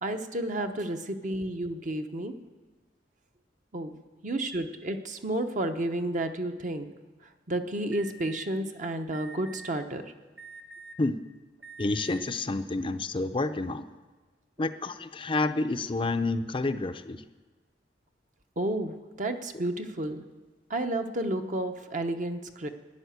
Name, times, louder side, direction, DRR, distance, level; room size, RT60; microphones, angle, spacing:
voice 1, 0.0-2.3 3.7-4.0 4.2-6.9 7.5-10.0 18.6-20.2 20.7-22.7, right 1 dB, 45° right, 6 dB, 0.9 m, -31 dB
Alarm, 7.9-8.4 9.1-9.7 10.4-11.0 11.6-12.2, right 4 dB, 75° right, 2.0 m, -45 dB
voice 2, 11.8-13.9 14.6-17.2, left 2 dB, 30° left, 9 dB, 0.5 m, -29 dB
12.5 x 10.5 x 8.0 m, 1.3 s
head